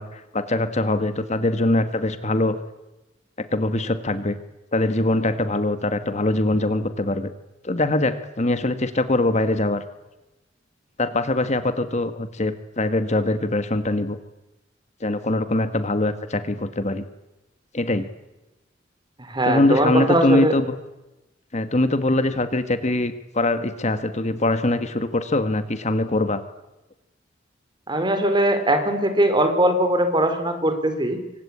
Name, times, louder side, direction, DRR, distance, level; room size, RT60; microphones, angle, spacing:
voice 1, 0.0-2.6 3.4-4.4 4.7-7.3 7.6-9.8 11.0-14.2 15.0-17.0 17.7-18.1 19.4-20.7 21.5-26.4, left 2 dB, 40° left, 10 dB, 1.5 m, -23 dB
voice 2, 19.2-20.5 27.9-31.2, right 1 dB, 25° right, 8 dB, 4.1 m, -20 dB
27.5 x 25.0 x 8.6 m, 1.0 s
head